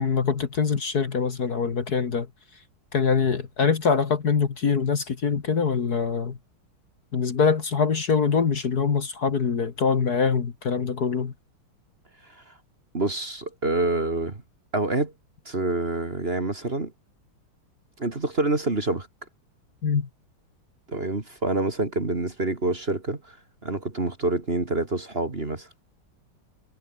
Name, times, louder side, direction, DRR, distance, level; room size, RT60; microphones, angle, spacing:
voice 1, 0.0-2.3 2.9-6.4 7.1-11.3 19.8-20.1, left 5 dB, 50° left, 2.1 m, -24 dB
voice 2, 12.9-14.4 14.7-15.1 15.5-16.9 18.0-19.1 20.9-23.4 23.6-25.7, right 2 dB, 30° right, 2.4 m, -27 dB
omnidirectional pair, 2.3 m